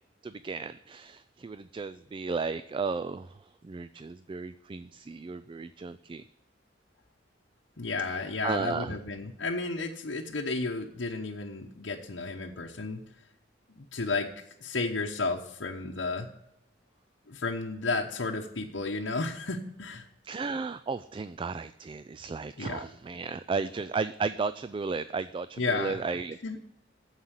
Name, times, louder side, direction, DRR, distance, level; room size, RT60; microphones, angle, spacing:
voice 1, 0.2-6.2 8.1-9.0 20.2-26.4, right 4 dB, 25° right, 14 dB, 0.3 m, -34 dB
voice 2, 7.8-13.0 13.8-14.3 14.6-16.3 17.3-20.1 22.6-22.8 25.6-26.0 26.4-26.6, left 3 dB, 70° left, -1 dB, 1.0 m, -32 dB
9.5 x 7.4 x 8.1 m, 0.82 s
head